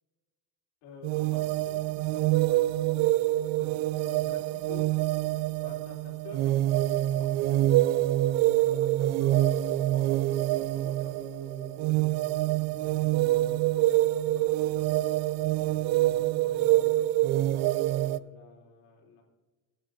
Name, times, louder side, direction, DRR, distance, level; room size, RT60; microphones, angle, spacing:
voice 1, 0.8-3.2 3.6-4.9 5.6-12.4 12.9-15.1 15.7-17.5 18.0-19.2, left 3 dB, 90° left, 0 dB, 3.6 m, -49 dB
sound 1, 1.0-18.2, right 15 dB, 85° right, 0.5 m, -26 dB
23.0 x 9.1 x 2.7 m, 1.3 s
cardioid pair, 155°, 37 cm